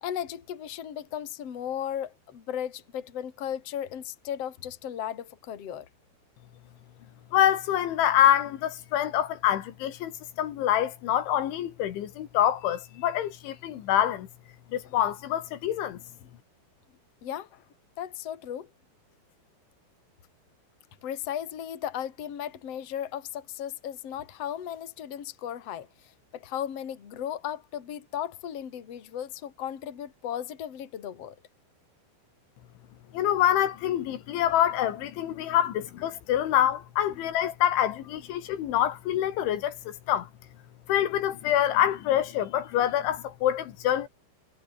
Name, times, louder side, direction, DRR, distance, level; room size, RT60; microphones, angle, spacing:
voice 1, 0.0-5.9 14.8-14.9 17.2-17.6 18.0-18.7 21.0-25.9 26.3-31.3 37.1-37.2, left 10 dB, 40° left, 3.0 m, -36 dB
voice 2, 7.3-14.3 14.7-16.0 33.1-40.3 40.9-44.1, left 11 dB, 80° left, 4.3 m, -26 dB
omnidirectional pair, 5.4 m